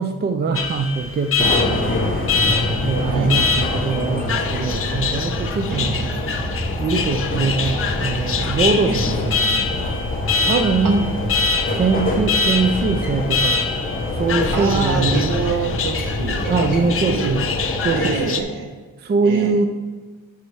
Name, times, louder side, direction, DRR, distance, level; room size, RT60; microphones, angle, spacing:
voice 1, 0.0-1.9 2.8-6.3 6.8-10.0 10.4-11.1 11.7-13.6 14.2-15.2 15.6-15.8 16.5-17.5 17.8-18.4 19.0-19.7, right 4 dB, 30° right, 6 dB, 0.4 m, -22 dB
Alarm, 0.6-18.4, left 5 dB, 40° left, 0.6 m, -25 dB
sound 1, 1.4-18.1, left 1 dB, 25° left, 1.2 m, -25 dB
voice 2, 3.0-3.4 5.7-6.0 8.9-9.0 10.8-10.9 14.5-17.3 17.9-18.7 19.2-19.6, right 5 dB, 70° right, 4 dB, 1.2 m, -26 dB
10.5 x 4.5 x 4.7 m, 1.4 s
wide cardioid pair, 170°, 33 cm